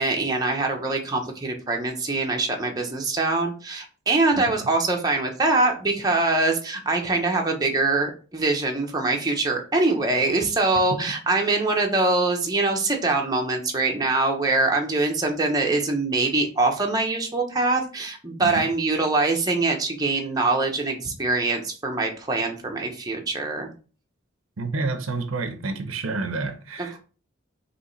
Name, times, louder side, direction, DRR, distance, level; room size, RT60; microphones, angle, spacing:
voice 1, 0.0-23.7 26.8-27.0, right 2 dB, 20° right, 0.7 m, -23 dB
voice 2, 24.6-27.0, right 3 dB, 85° right, 0.8 m, -29 dB
5.2 x 3.1 x 3.1 m
head